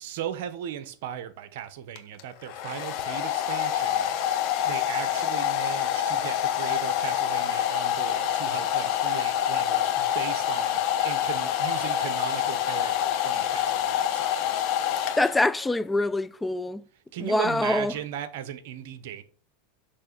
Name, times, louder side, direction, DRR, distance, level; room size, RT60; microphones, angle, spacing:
voice 1, 0.0-14.7 17.1-19.2, right 10 dB, 70° right, 0.9 m, -37 dB
Domestic sounds home sounds, 2.0-15.7, left 10 dB, 55° left, 1.1 m, -27 dB
voice 2, 15.2-16.8 17.2-17.9, left 2 dB, 10° left, 0.4 m, -24 dB
6.6 x 3.2 x 6.0 m
hypercardioid pair, 110°, 0 cm